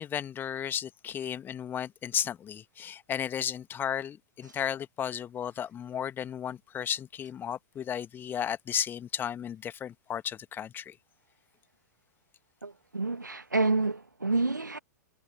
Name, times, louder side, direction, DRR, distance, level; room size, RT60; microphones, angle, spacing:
voice 1, 0.0-10.9, left 9 dB, 20° left, 1.6 m, -34 dB
voice 2, 12.6-14.8, right 3 dB, 80° right, 1.6 m, -28 dB
figure-of-eight pair, 100°, 10 cm